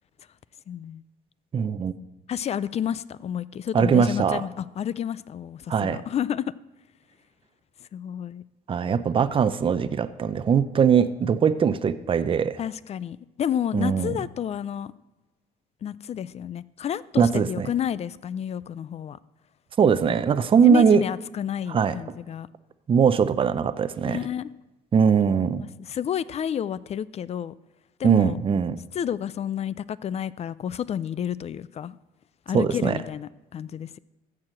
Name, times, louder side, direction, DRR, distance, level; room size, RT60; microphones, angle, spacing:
voice 1, 0.7-1.0 2.3-6.5 7.8-8.4 12.6-14.9 15.8-19.2 20.1-20.2 20.6-22.5 24.0-24.5 25.8-27.5 28.0-28.4 28.9-32.0 32.5-34.0, left 9 dB, 40° left, 0.4 m, -30 dB
voice 2, 1.5-1.9 3.7-4.4 5.7-6.0 8.7-12.6 13.7-14.2 17.2-17.7 19.8-21.0 21.7-22.0 22.9-24.2 24.9-25.6 28.0-28.8 32.5-33.0, right 6 dB, 30° right, 0.6 m, -21 dB
14.5 x 4.8 x 7.6 m
cardioid pair, 110°, 17 cm